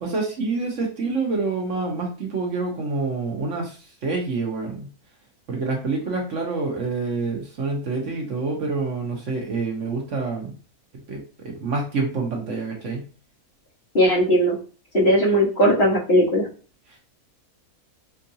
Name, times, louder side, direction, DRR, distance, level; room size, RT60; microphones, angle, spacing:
voice 1, 0.0-4.9 5.5-10.5 11.1-13.0, right 3 dB, 60° right, 0 dB, 1.1 m, -27 dB
voice 2, 13.9-14.5 14.9-16.5, equal, 45° left, -5 dB, 1.6 m, -18 dB
4.5 x 2.4 x 2.7 m, 0.38 s
omnidirectional pair, 1.6 m